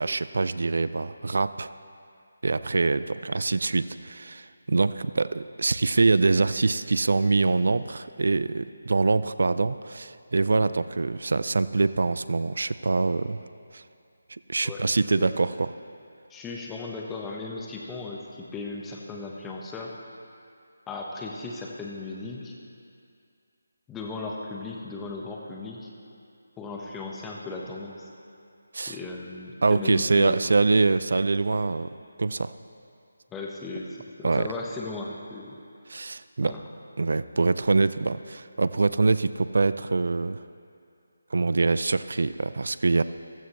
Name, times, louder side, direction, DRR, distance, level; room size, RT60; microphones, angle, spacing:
voice 1, 0.0-1.7 2.4-13.4 13.7-13.8 14.3-15.7 28.7-29.0 29.6-31.9 32.2-32.5 34.2-34.5 35.9-36.5 37.0-40.4 41.3-43.0, right 3 dB, 60° right, 14 dB, 0.5 m, -24 dB
voice 2, 16.3-19.9 20.9-22.5 23.9-25.9 26.6-28.1 28.9-30.5 33.3-35.6 36.4-36.6, left 3 dB, 10° left, -2 dB, 1.2 m, -37 dB
15.5 x 14.0 x 3.2 m, 2.4 s
figure-of-eight pair, 155°, 0 cm